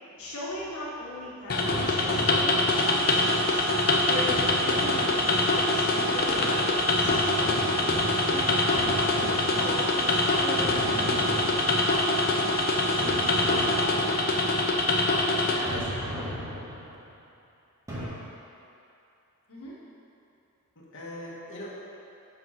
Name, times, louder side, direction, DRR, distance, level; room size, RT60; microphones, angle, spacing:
voice 1, 0.0-3.6 4.1-7.2 8.2-8.6 8.9-11.9 12.2-12.8 19.5-19.7, left 1 dB, 85° left, -7 dB, 1.3 m, -38 dB
sound 1, 1.5-15.6, left 2 dB, 45° left, 0.7 m, -25 dB
sound 2, 1.7-3.0 4.3-5.6 7.0-10.1 10.6-12.1 13.0-14.4 15.7-17.0 17.9-18.1, equal, 15° right, 1.6 m, -36 dB
sound 3, 2.7-14.1, right 5 dB, 60° right, 1.6 m, -35 dB
voice 2, 15.5-16.1 20.7-21.7, left 1 dB, 60° left, -6 dB, 1.5 m, -39 dB
6.1 x 5.3 x 5.6 m, 2.7 s
head